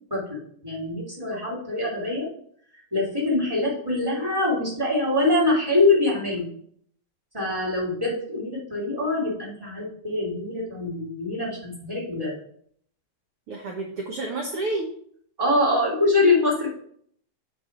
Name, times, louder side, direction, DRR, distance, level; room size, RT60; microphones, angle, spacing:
voice 1, 0.1-2.3 2.9-6.5 7.3-12.3 15.4-16.7, left 2 dB, 5° right, -4 dB, 2.6 m, -24 dB
voice 2, 13.5-14.9, right 2 dB, 65° right, 1 dB, 1.6 m, -30 dB
8.5 x 4.7 x 4.8 m, 0.63 s
omnidirectional pair, 3.6 m